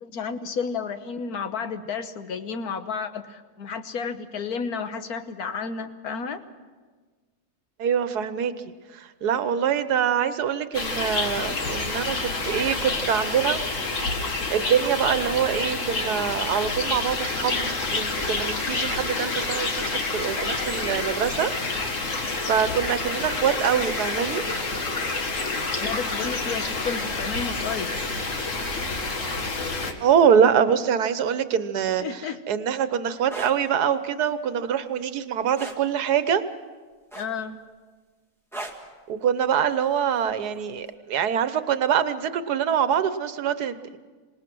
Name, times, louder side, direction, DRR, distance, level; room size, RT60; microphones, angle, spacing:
voice 1, 0.0-6.4 25.8-27.9 32.0-32.4 37.1-37.6, left 5 dB, 75° left, 9 dB, 1.6 m, -32 dB
voice 2, 7.8-8.5 8.9-13.6 14.5-21.5 21.9-24.4 30.0-36.4 39.1-44.0, right 8 dB, 85° right, 12 dB, 1.5 m, -24 dB
sound 1, 10.7-29.9, left 3 dB, 55° left, 1.9 m, -28 dB
sound 2, 33.2-33.5 35.5-35.8 37.1-37.5 38.5-38.9 40.3-40.5, right 2 dB, ahead, 1.8 m, -36 dB
26.5 x 19.0 x 6.2 m, 1.4 s
omnidirectional pair, 1.6 m